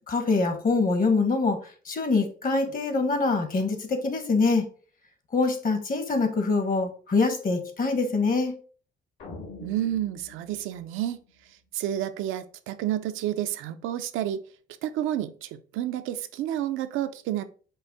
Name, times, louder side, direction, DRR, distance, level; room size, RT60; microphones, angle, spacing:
voice 1, 0.1-4.7 5.3-8.5, left 3 dB, 45° left, 1.0 m, -24 dB
sound 1, 9.2-11.7, left 3 dB, 70° left, 1.7 m, -45 dB
voice 2, 9.6-11.2 11.7-14.4 14.8-17.4, right 12 dB, 90° right, 0.4 m, -30 dB
5.2 x 2.1 x 3.8 m
cardioid pair, 90°, 20 cm